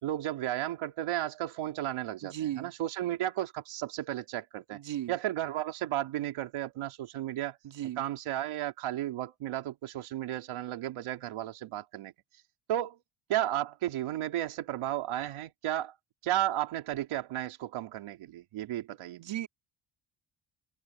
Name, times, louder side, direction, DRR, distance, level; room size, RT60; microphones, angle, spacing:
voice 1, 0.0-4.8 5.1-7.6 8.0-12.1 12.7-13.0 13.3-16.0 16.2-19.3, right 13 dB, 90° right, 3.2 m, -33 dB
voice 2, 2.2-2.7 4.7-5.1 7.6-8.0 19.1-19.5, right 12 dB, 60° right, 2.3 m, -36 dB
open air
cardioid pair, 130°, 49 cm